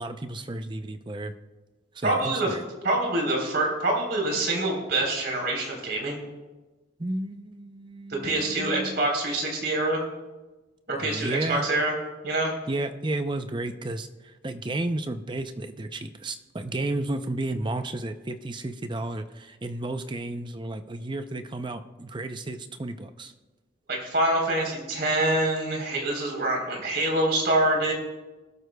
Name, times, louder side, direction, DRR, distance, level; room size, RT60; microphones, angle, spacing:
voice 1, 0.0-1.3 1.9-2.6 7.0-9.0 11.0-11.7 12.7-23.3, right 2 dB, 25° right, 8 dB, 0.6 m, -32 dB
voice 2, 2.0-2.5 2.8-6.2 8.1-10.0 10.9-11.9 12.2-12.5 23.9-27.9, right 2 dB, 60° right, 0 dB, 3.8 m, -25 dB
20.5 x 12.5 x 2.3 m, 1.2 s
head